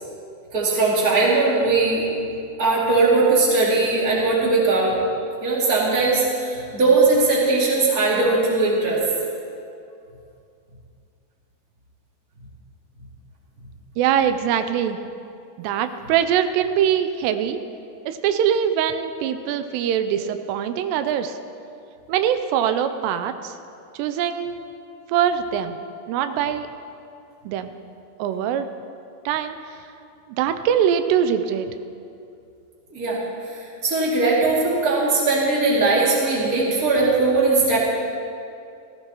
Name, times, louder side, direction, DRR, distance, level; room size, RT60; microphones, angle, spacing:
voice 1, 0.5-2.0 2.6-5.0 5.4-9.0 32.9-33.2 33.4-37.8, right 3 dB, 25° right, -6 dB, 2.3 m, -19 dB
voice 2, 14.0-15.0 15.6-17.6 18.1-21.4 22.1-23.5 24.0-24.6 25.1-25.8 26.1-26.7 27.5-27.7 28.2-28.7 29.3-29.6 30.4-31.7, right 9 dB, 90° right, 9 dB, 2.7 m, -22 dB
16.0 x 15.5 x 3.0 m, 2.5 s
omnidirectional pair, 4.8 m